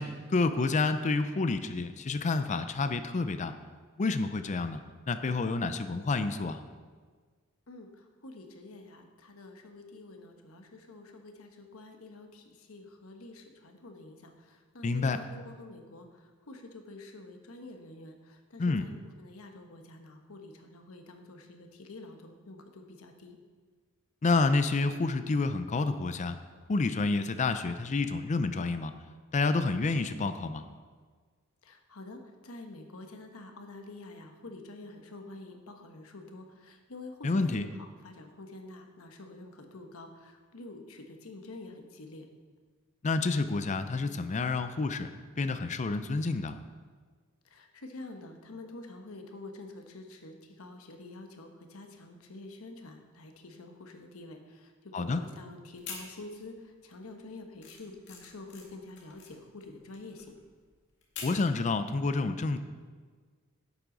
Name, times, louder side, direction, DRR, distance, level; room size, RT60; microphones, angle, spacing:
voice 1, 0.0-3.5 4.0-4.8 5.1-6.6 14.8-15.2 18.6-18.9 24.2-26.4 26.7-28.9 29.3-30.7 37.2-37.7 43.0-45.1 45.4-46.6 54.9-55.2 61.2-62.6, left 3 dB, 35° left, 10 dB, 0.4 m, -29 dB
voice 2, 7.7-18.9 19.2-23.4 31.6-42.3 47.4-60.4, left 2 dB, 75° left, 5 dB, 1.1 m, -47 dB
sound 1, 55.7-56.6 57.0-61.5, left 5 dB, 55° left, 2.0 m, -46 dB
11.0 x 8.2 x 3.9 m, 1.5 s
head